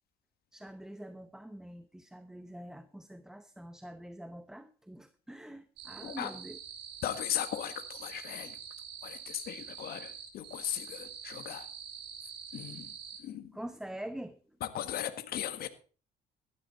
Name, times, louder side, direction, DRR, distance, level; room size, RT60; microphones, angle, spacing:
voice 1, 0.5-6.6 13.5-14.4, right 1 dB, 5° right, 12 dB, 0.8 m, -45 dB
sound 1, 5.8-13.2, right 8 dB, 80° right, 6.6 m, -46 dB
voice 2, 7.0-8.6 9.0-11.7 12.5-13.5 14.6-15.7, left 11 dB, 65° left, 11 dB, 1.7 m, -37 dB
14.0 x 12.5 x 4.2 m, 0.38 s
cardioid pair, 110°, 17 cm